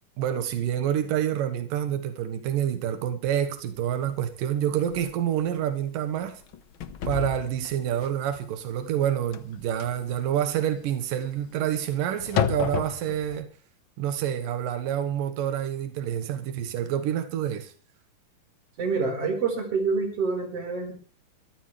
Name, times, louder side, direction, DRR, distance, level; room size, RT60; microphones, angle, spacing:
voice 1, 0.2-6.4 7.1-13.5 14.0-17.7, right 10 dB, 90° right, 3.0 m, -28 dB
sound 1, 3.8-3.9 4.3-4.4 4.9-5.1 5.5-5.8 6.2-13.4, left 8 dB, 60° left, 1.3 m, -32 dB
voice 2, 18.8-20.9, right 4 dB, 45° right, 5.4 m, -27 dB
23.5 x 13.5 x 3.3 m
omnidirectional pair, 3.8 m